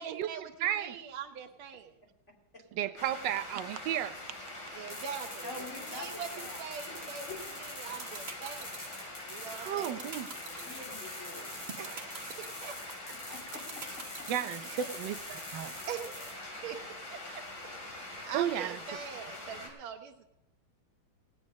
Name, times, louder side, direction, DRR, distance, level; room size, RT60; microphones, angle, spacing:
voice 1, 0.0-1.9 4.7-7.3 7.6-8.7 9.3-10.1 11.8-12.8 14.6-14.9 15.9-17.4 17.9-20.2, right 7 dB, 90° right, 2 dB, 1.6 m, -43 dB
voice 2, 0.6-1.0 2.7-4.2 9.5-10.3 14.3-15.8 18.3-18.8, right 11 dB, 70° right, 12 dB, 1.2 m, -33 dB
sound 1, 3.0-19.7, left 2 dB, 50° left, 3.0 m, -44 dB
sound 2, 4.9-16.3, left 2 dB, 80° left, 6.1 m, -46 dB
voice 3, 5.4-6.6 7.3-7.4 10.4-11.5 13.3-13.4, left 3 dB, 35° left, -1 dB, 3.3 m, -45 dB
sound 3, 7.6-14.6, right 5 dB, 40° right, 1.0 m, -43 dB
17.5 x 9.4 x 5.2 m, 0.87 s
omnidirectional pair, 2.3 m